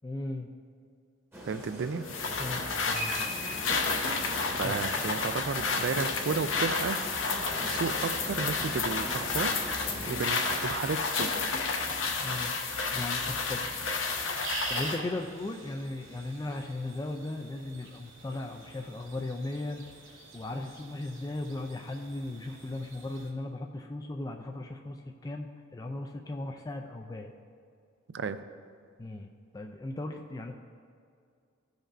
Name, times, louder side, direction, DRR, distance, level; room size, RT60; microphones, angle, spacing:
voice 1, 0.0-0.5 2.4-3.3 4.6-4.8 12.2-12.6 12.9-13.7 14.7-19.8 20.3-25.0 25.2-27.3 29.0-29.3 29.5-30.6, left 2 dB, 20° left, 3 dB, 0.3 m, -37 dB
sound 1, 1.3-10.3, equal, 10° right, 1.0 m, -41 dB
voice 2, 1.5-2.0 4.6-7.0 7.7-9.6 10.1-11.3 28.1-28.4, right 5 dB, 60° right, 12 dB, 0.4 m, -33 dB
sound 2, 2.1-15.0, left 4 dB, 65° left, 0.8 m, -31 dB
sound 3, 7.3-23.3, right 3 dB, 80° right, 1.9 m, -47 dB
15.5 x 5.3 x 2.5 m, 2.3 s
head